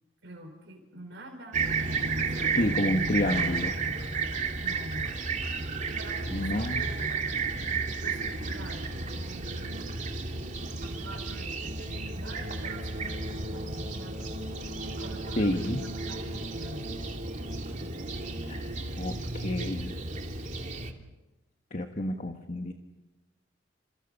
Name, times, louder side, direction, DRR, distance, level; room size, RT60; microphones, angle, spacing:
voice 1, 0.2-2.9 4.6-5.2 5.8-7.5 7.9-10.0 10.8-14.2 14.8-17.0, right 1 dB, 70° right, 1 dB, 4.7 m, -46 dB
Fixed-wing aircraft airplane, 1.5-20.9, right 4 dB, 40° right, 2.6 m, -33 dB
voice 2, 2.6-3.8 6.3-6.9 15.4-15.8 18.4-20.0 21.7-22.7, left 1 dB, 45° left, 5 dB, 1.5 m, -30 dB
29.5 x 27.5 x 5.5 m, 1.0 s
head